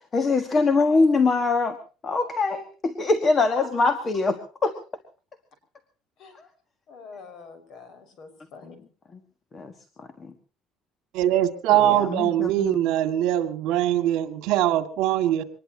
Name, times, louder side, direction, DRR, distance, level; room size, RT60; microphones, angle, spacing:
voice 1, 0.1-1.8 2.0-4.4 4.6-4.7 6.4-6.5 9.5-9.7 10.0-10.3 11.8-12.9, left 3 dB, 25° left, 10 dB, 1.5 m, -23 dB
voice 2, 6.9-8.8, left 3 dB, 50° left, 9 dB, 5.6 m, -43 dB
voice 3, 11.1-15.4, right 12 dB, 70° right, 9 dB, 2.1 m, -22 dB
24.5 x 20.0 x 2.9 m, 0.37 s
cardioid pair, 160°, 0 cm